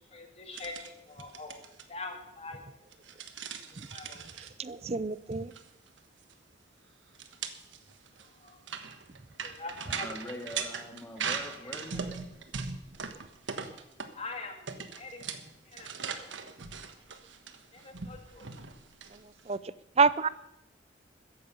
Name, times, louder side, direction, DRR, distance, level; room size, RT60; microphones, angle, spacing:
voice 1, 0.1-2.6 3.9-4.2 8.2-8.6 9.4-10.1 11.6-12.0 14.2-14.7 14.9-15.2 15.6-16.3 17.7-18.5, left 3 dB, 35° left, 4 dB, 2.2 m, -44 dB
sound 1, 0.5-0.9 1.2-1.8 2.9-4.5 5.3-5.6 5.9-6.0 6.3-6.4 7.1-14.3 14.7-19.5, right 6 dB, 80° right, 1.3 m, -39 dB
voice 2, 4.4-5.5 19.5-20.3, right 4 dB, 35° right, 17 dB, 0.5 m, -28 dB
voice 3, 9.9-12.3, left 1 dB, 10° left, 3 dB, 1.8 m, -43 dB
14.0 x 10.5 x 6.9 m, 0.85 s
head